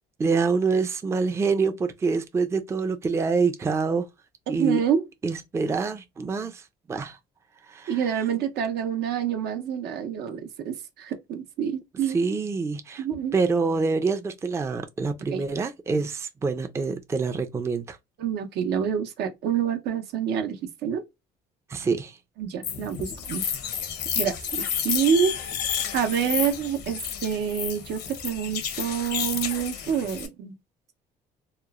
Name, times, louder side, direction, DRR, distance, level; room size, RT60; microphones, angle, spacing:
voice 1, 0.2-4.1 4.5-4.8 5.2-7.2 7.7-8.1 12.1-13.0 13.3-18.0 21.7-22.2, right 4 dB, 15° right, 0.4 m, -26 dB
voice 2, 4.5-5.0 7.9-12.2 13.0-13.4 15.3-15.5 18.2-21.0 22.4-23.4 24.2-25.3 25.9-30.5, right 8 dB, 80° right, 0.7 m, -27 dB
sound 1, 22.6-30.3, left 8 dB, 80° left, 0.7 m, -31 dB
2.9 x 2.0 x 2.3 m
cardioid pair, 110°, 17 cm